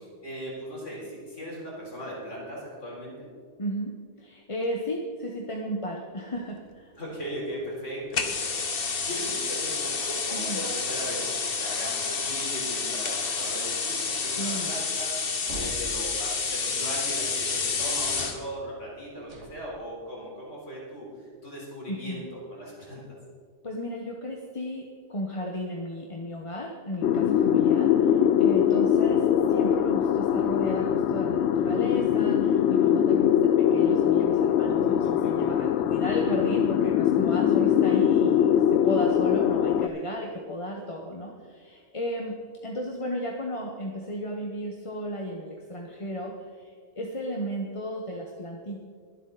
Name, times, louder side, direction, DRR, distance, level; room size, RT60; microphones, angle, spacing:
voice 1, 0.2-3.3 6.9-21.1 21.4-23.2 27.5-27.7 34.7-35.5 37.4-37.5, equal, 90° left, -4 dB, 4.2 m, -38 dB
voice 2, 3.6-6.9 10.3-10.6 14.4-14.7 21.9-22.2 23.6-29.2 29.5-42.4 42.6-48.9, equal, 30° left, 0 dB, 1.1 m, -34 dB
sound 1, 8.1-18.4, left 5 dB, 50° left, 1.3 m, -29 dB
sound 2, 15.5-16.4 19.2-19.5, right 2 dB, 75° right, 2.3 m, -40 dB
sound 3, 27.0-39.9, left 9 dB, 70° left, 0.8 m, -22 dB
23.0 x 8.2 x 4.0 m, 2.1 s
omnidirectional pair, 1.2 m